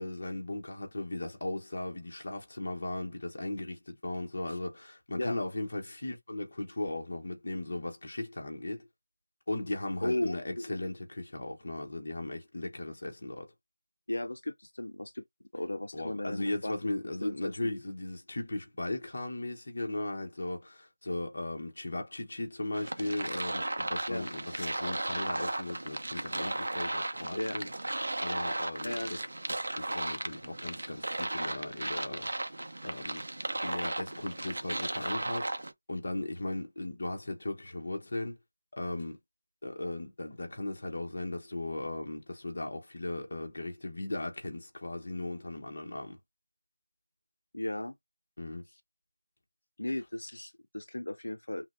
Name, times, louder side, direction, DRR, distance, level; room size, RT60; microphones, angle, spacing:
voice 1, 0.0-8.9 9.5-13.5 15.9-27.7 28.2-29.2 29.5-33.2 33.6-35.5 35.9-38.4 38.7-39.2 39.6-46.2 48.4-48.6, left 2 dB, 35° left, 1.0 m, -37 dB
voice 2, 10.0-10.7 14.1-15.2 15.5-16.9 17.2-17.5 24.1-24.3 27.3-27.6 28.8-29.1 47.5-47.9 49.8-51.7, left 1 dB, 75° left, 0.5 m, -35 dB
sound 1, 22.7-35.7, right 2 dB, 55° right, 0.7 m, -35 dB
5.8 x 2.2 x 2.5 m
figure-of-eight pair, 180°, 0 cm